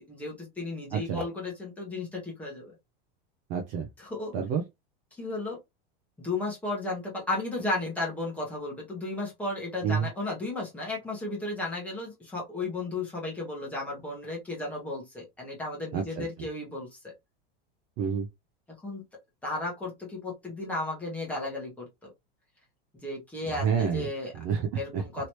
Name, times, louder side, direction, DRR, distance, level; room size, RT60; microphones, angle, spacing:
voice 1, 0.1-2.7 4.0-4.3 5.2-5.6 6.2-17.1 18.8-19.0 19.4-22.1 22.9-24.3 24.8-25.3, left 2 dB, 5° left, 1.1 m, -34 dB
voice 2, 3.5-3.9 4.3-4.6 9.8-10.1 15.9-16.2 18.0-18.3 23.4-24.1 24.3-25.0, right 7 dB, 30° right, 0.5 m, -28 dB
3.0 x 2.8 x 3.0 m
supercardioid pair, 175°, 29 cm